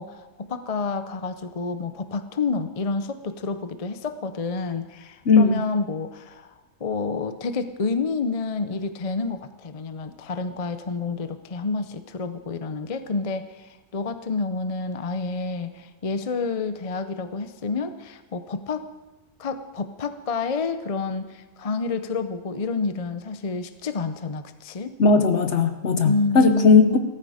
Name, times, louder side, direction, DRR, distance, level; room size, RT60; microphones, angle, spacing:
voice 1, 0.0-6.5 6.8-18.9 19.4-24.9 26.0-27.0, left 4 dB, 35° left, 10 dB, 0.7 m, -29 dB
voice 2, 5.3-5.6 25.0-27.0, left 4 dB, 60° left, 8 dB, 1.3 m, -17 dB
17.0 x 14.0 x 5.0 m, 1.1 s
omnidirectional pair, 1.3 m